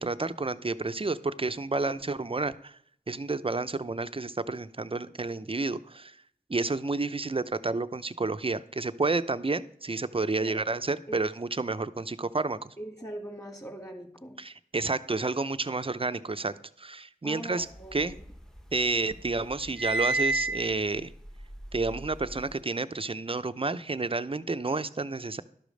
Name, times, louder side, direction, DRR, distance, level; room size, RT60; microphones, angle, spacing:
voice 1, 0.0-2.7 3.1-6.1 6.5-12.7 14.4-17.7 17.9-18.2 18.7-21.1 21.7-25.4, right 3 dB, 35° right, 13 dB, 0.6 m, -30 dB
voice 2, 12.8-14.4 17.2-18.2, right 1 dB, 20° left, 4 dB, 2.2 m, -41 dB
sound 1, 17.8-18.8 19.1-22.5, right 3 dB, 5° left, 0.9 m, -32 dB
11.5 x 5.1 x 6.4 m, 0.68 s
wide cardioid pair, 40°, 17 cm